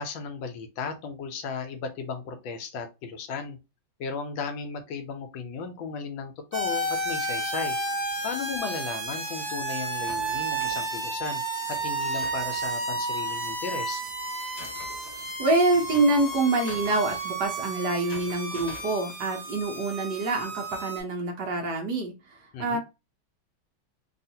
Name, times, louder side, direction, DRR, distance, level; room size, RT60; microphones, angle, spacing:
voice 1, 0.0-3.6 4.0-7.8 8.2-11.4 11.7-14.0 22.5-22.8, left 5 dB, 80° left, 7 dB, 1.4 m, -35 dB
sound 1, 6.5-21.0, right 2 dB, 30° right, 1.1 m, -32 dB
sound 2, 9.9-10.9 11.7-13.0 13.8-18.9, left 3 dB, 55° left, 1.2 m, -47 dB
voice 2, 15.4-22.8, right 2 dB, 65° right, 2 dB, 1.3 m, -26 dB
3.5 x 2.4 x 2.7 m, 0.26 s
omnidirectional pair, 2.1 m